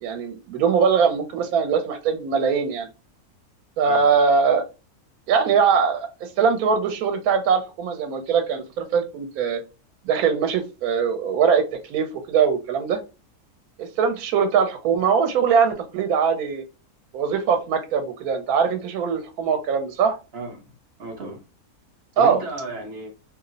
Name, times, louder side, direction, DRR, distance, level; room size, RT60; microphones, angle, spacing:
voice 1, 0.0-2.9 3.8-4.6 5.3-9.6 10.1-11.6 11.9-13.0 13.8-16.6 17.1-20.2 22.2-22.4, right 6 dB, 75° right, 1.0 m, -21 dB
voice 2, 20.3-20.7 21.0-21.4 22.2-23.1, right 2 dB, 50° right, 0.9 m, -34 dB
2.6 x 2.0 x 3.7 m
omnidirectional pair, 1.6 m